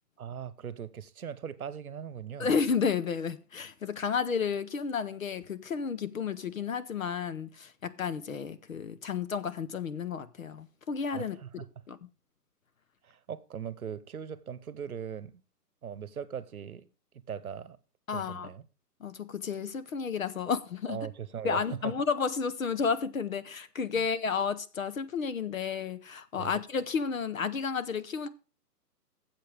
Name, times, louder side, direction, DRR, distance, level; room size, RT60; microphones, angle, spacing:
voice 1, 0.2-2.5 11.1-11.6 13.0-15.4 15.8-16.9 17.3-17.8 18.1-18.6 20.9-21.9 23.9-24.0 26.4-26.5, right 8 dB, 60° right, 1.0 m, -39 dB
voice 2, 2.4-12.0 18.1-18.5 19.0-21.0 21.4-28.3, left 6 dB, 55° left, 0.9 m, -32 dB
13.5 x 7.6 x 3.5 m
hypercardioid pair, 175°, 48 cm